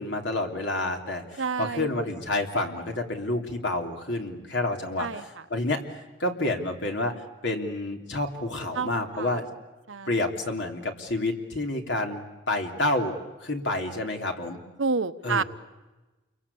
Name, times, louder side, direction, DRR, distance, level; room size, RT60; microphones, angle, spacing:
voice 1, 0.0-5.8 6.2-7.1 7.4-9.4 10.1-13.2 13.4-14.6 15.2-15.4, left 2 dB, 65° left, 3 dB, 3.3 m, -29 dB
voice 2, 1.4-1.9 5.0-5.2 8.7-8.9 9.1-9.4 9.9-10.1 14.8-15.4, right 4 dB, 85° right, 11 dB, 1.0 m, -28 dB
29.0 x 23.5 x 8.5 m, 1.1 s
head